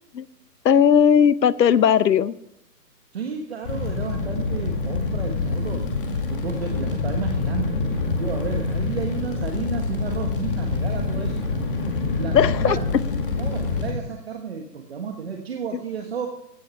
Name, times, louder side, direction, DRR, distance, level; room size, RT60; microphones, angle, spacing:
voice 1, 0.6-2.4 12.3-12.8, left 8 dB, 80° left, 17 dB, 0.9 m, -17 dB
voice 2, 3.1-5.8 6.3-11.4 12.2-13.0 13.4-16.3, right 6 dB, 40° right, 3 dB, 1.5 m, -32 dB
Fire, 3.6-13.9, left 4 dB, 30° left, 2.1 m, -26 dB
15.5 x 9.0 x 5.6 m, 0.76 s
hypercardioid pair, 170°, 49 cm